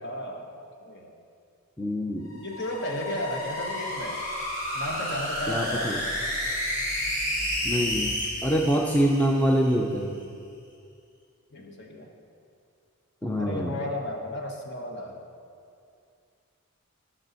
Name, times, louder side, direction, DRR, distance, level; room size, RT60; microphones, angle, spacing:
voice 1, 0.0-1.1 2.4-4.2 4.7-6.0 11.5-12.1 13.4-15.2, left 1 dB, 50° left, 1 dB, 1.2 m, -34 dB
voice 2, 1.8-2.4 5.5-6.0 7.6-8.1 8.4-10.1 13.2-13.7, equal, 5° left, -1 dB, 0.5 m, -25 dB
sound 1, 2.3-9.8, left 1 dB, 35° left, 2.1 m, -31 dB
16.0 x 6.3 x 4.1 m, 2.4 s
head